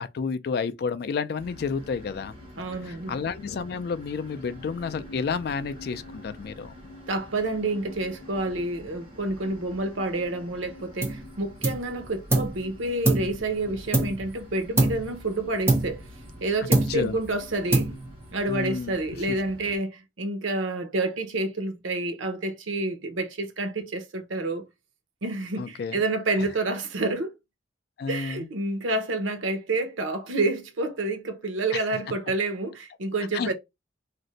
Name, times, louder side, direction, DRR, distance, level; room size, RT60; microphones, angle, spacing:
voice 1, 0.0-2.3 2.9-6.7 16.6-17.2 18.5-18.9 25.6-26.0 26.4-26.5 28.0-28.5 31.7-31.8 33.3-33.5, left 5 dB, 55° left, 0.3 m, -31 dB
sound 1, 1.4-19.8, left 1 dB, 30° right, 1.4 m, -47 dB
voice 2, 2.6-3.1 7.1-16.1 16.4-17.9 18.3-24.6 25.2-27.3 28.1-33.5, right 2 dB, 85° right, 0.7 m, -29 dB
sound 2, 11.0-11.3 11.6-12.6 13.0-14.4 14.8-15.2 15.7-16.4 16.7-17.2 17.7-18.3, right 2 dB, 15° right, 0.5 m, -25 dB
2.5 x 2.1 x 3.8 m
head